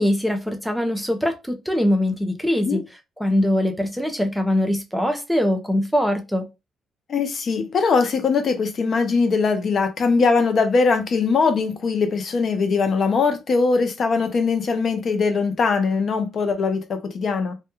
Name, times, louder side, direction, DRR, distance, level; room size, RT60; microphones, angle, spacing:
voice 1, 0.0-2.8 3.2-6.5, left 1 dB, ahead, 0.5 m, -22 dB
voice 2, 7.1-17.5, left 4 dB, 55° left, 0.5 m, -21 dB
2.2 x 2.2 x 2.9 m
cardioid pair, 90°, 0 cm